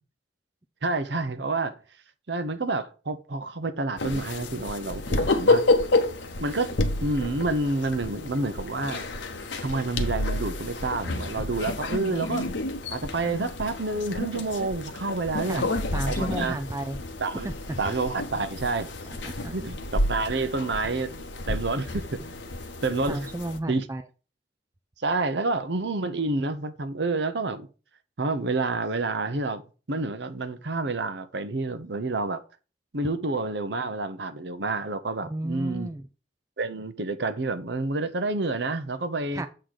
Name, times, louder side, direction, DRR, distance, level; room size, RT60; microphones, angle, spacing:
voice 1, 0.8-1.7 2.3-5.6 6.4-6.7 7.0-9.1 9.6-12.5 12.9-15.6 16.1-16.6 17.2-17.5 17.8-18.9 19.5-21.2 21.5-22.3 22.8-23.3 23.7-23.9 25.0-27.7 28.2-29.6 29.9-32.4 32.9-35.9 36.6-39.4, right 3 dB, 65° right, 0.9 m, -28 dB
sound 1, 4.0-23.6, left 2 dB, 80° left, 0.9 m, -29 dB
voice 2, 15.6-17.0 19.2-19.5 23.1-24.0 35.2-36.0 39.3-39.5, right 1 dB, 15° right, 0.4 m, -33 dB
7.7 x 3.8 x 6.5 m
head